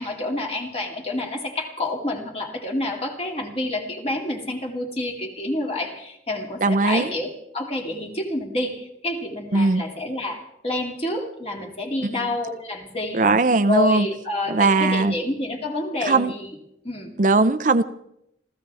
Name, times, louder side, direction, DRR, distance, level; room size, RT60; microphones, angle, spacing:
voice 1, 0.0-13.2 13.7-16.5 16.8-17.1, left 1 dB, 35° left, 2.6 m, -28 dB
voice 2, 6.6-7.1 9.5-9.8 12.0-12.2 13.1-14.1 14.5-15.1 16.0-16.3 17.2-17.8, right 3 dB, 45° right, 0.6 m, -19 dB
27.0 x 15.5 x 3.5 m
head